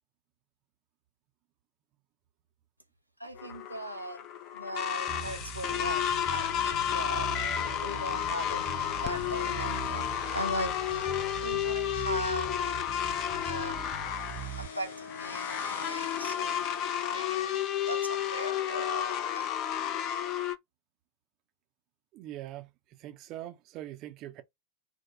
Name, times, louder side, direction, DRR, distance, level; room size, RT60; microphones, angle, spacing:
voice 1, 3.2-4.3 4.5-10.1 10.3-12.8 13.4-13.8 14.6-16.6 17.1-17.6 17.9-19.5, right 1 dB, 90° right, 0.6 m, -39 dB
sound 1, 3.4-20.5, left 10 dB, 40° left, 0.5 m, -32 dB
sound 2, 4.8-19.0, left 4 dB, 60° left, 0.8 m, -49 dB
Bass guitar, 5.1-14.7, right 8 dB, 5° right, 0.8 m, -42 dB
voice 2, 22.1-24.4, right 13 dB, 40° right, 0.6 m, -43 dB
4.3 x 2.2 x 4.2 m
figure-of-eight pair, 90°, 0 cm